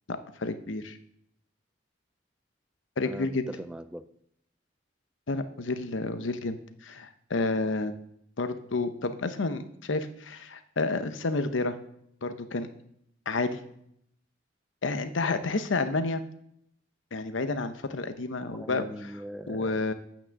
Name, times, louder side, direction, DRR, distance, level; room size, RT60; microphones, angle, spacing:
voice 1, 0.1-1.0 3.0-3.5 5.3-6.6 6.8-8.0 8.4-11.8 12.2-12.7 13.3-13.6 14.8-16.2 17.1-18.9 19.5-19.9, left 3 dB, 90° left, 10 dB, 0.8 m, -30 dB
voice 2, 3.0-4.0 18.5-19.8, equal, 5° right, 12 dB, 0.3 m, -40 dB
8.3 x 6.1 x 6.3 m, 0.71 s
head